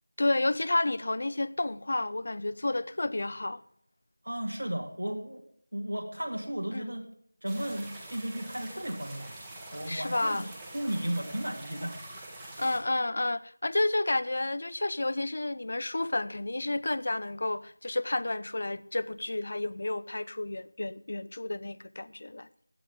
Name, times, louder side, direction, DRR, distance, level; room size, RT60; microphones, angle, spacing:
voice 1, 0.2-3.6 6.7-6.9 9.9-10.5 12.6-22.5, left 2 dB, 50° left, 0.5 m, -31 dB
voice 2, 4.2-5.4 5.7-7.1 7.4-9.4 9.7-10.4 10.7-12.0, right 1 dB, 75° right, 2.1 m, -34 dB
sound 1, 7.5-12.8, right 2 dB, 10° right, 1.6 m, -45 dB
16.0 x 9.7 x 3.6 m
figure-of-eight pair, 170°, 0 cm